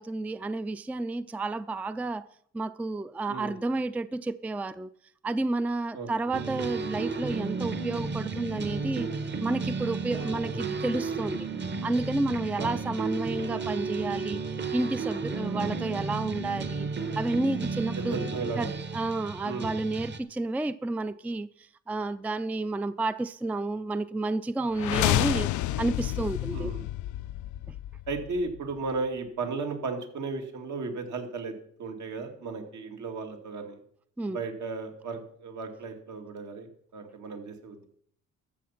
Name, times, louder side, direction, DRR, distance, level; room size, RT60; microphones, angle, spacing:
voice 1, 0.0-2.2 2.5-4.9 5.2-9.1 9.4-11.5 11.8-14.4 14.7-16.9 17.2-18.2 18.6-25.5 25.8-26.7 27.7-27.8 34.2-34.4, right 2 dB, 5° right, 0.4 m, -31 dB
voice 2, 3.3-3.6 5.9-6.3 10.2-10.7 12.6-12.8 15.5-15.8 18.0-18.8 19.4-19.8 26.5-26.8 28.1-31.5 31.8-33.8 34.3-37.9, right 3 dB, 70° right, 2.5 m, -35 dB
sound 1, 6.3-20.2, right 4 dB, 35° right, 1.2 m, -33 dB
sound 2, 24.7-28.7, left 15 dB, 75° left, 0.5 m, -29 dB
13.5 x 7.1 x 5.8 m
cardioid pair, 90°, 30 cm